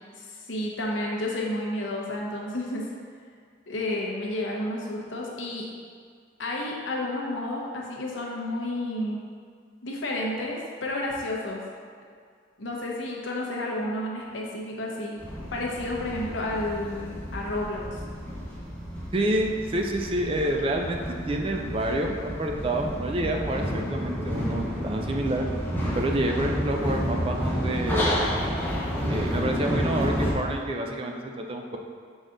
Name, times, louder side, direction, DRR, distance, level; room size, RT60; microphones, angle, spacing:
voice 1, 0.1-2.9 3.7-5.7 6.4-9.2 9.8-11.6 12.6-15.2 15.5-17.9, left 1 dB, 80° left, -2 dB, 1.0 m, -31 dB
sound 1, 15.2-30.3, equal, 10° left, 0.8 m, -30 dB
voice 2, 19.1-21.0 21.3-25.5 25.9-28.2 29.1-31.8, right 1 dB, 30° right, 2 dB, 0.4 m, -28 dB
6.2 x 4.1 x 3.8 m, 2.1 s
head